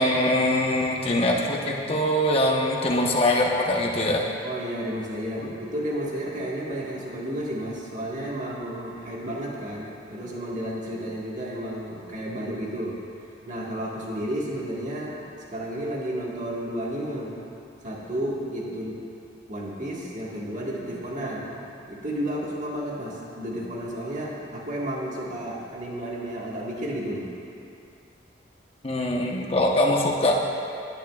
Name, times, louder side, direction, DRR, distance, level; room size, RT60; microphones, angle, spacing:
voice 1, 0.0-4.3 5.4-5.5 28.8-30.4, left 1 dB, 30° left, -1 dB, 1.0 m, -23 dB
voice 2, 4.4-13.0 13.4-15.2 15.5-17.4 17.8-19.0 19.5-21.6 21.9-27.3, right 1 dB, 40° right, -4 dB, 1.6 m, -32 dB
19.0 x 9.3 x 2.4 m, 2.6 s
head